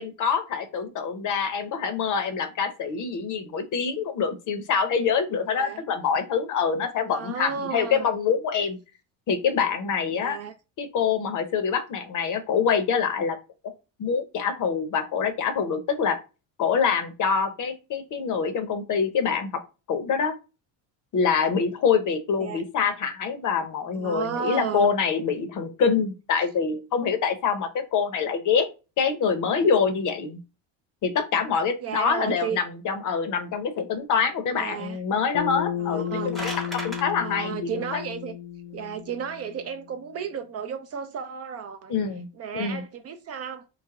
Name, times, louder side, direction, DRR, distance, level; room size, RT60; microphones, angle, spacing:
voice 1, 0.0-8.8 9.3-10.4 10.8-13.4 14.0-16.2 16.6-19.5 19.9-20.3 21.1-28.7 29.0-30.4 31.0-38.0 41.9-42.3 42.5-42.8, left 6 dB, 45° left, 0.7 m, -25 dB
voice 2, 5.5-5.8 7.1-8.1 10.2-10.5 22.4-22.6 23.9-24.9 31.8-32.6 34.5-35.0 35.8-36.4 37.2-38.4 38.7-42.0 42.3-43.7, right 7 dB, 35° right, 0.4 m, -33 dB
Bass guitar, 35.3-39.8, left 10 dB, 85° left, 0.7 m, -33 dB
sound 1, 35.9-37.0, right 1 dB, ahead, 0.7 m, -35 dB
3.3 x 2.1 x 3.5 m
cardioid pair, 110°, 43 cm